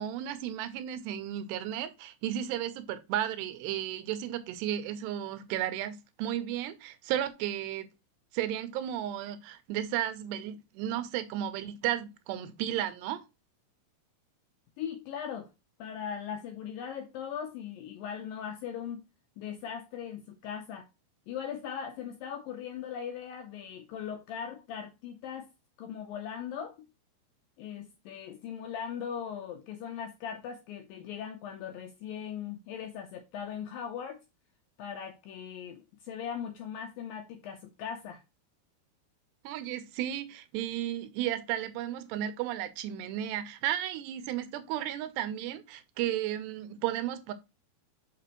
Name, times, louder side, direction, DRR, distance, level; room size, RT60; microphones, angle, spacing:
voice 1, 0.0-7.9 8.3-13.2 39.4-47.3, right 11 dB, 85° right, 2.9 m, -34 dB
voice 2, 14.8-15.5 15.8-19.1 19.4-20.9 21.3-25.5 25.8-26.8 27.6-34.2 34.8-38.2, left 8 dB, 80° left, 2.0 m, -39 dB
6.0 x 6.0 x 3.0 m
omnidirectional pair, 4.9 m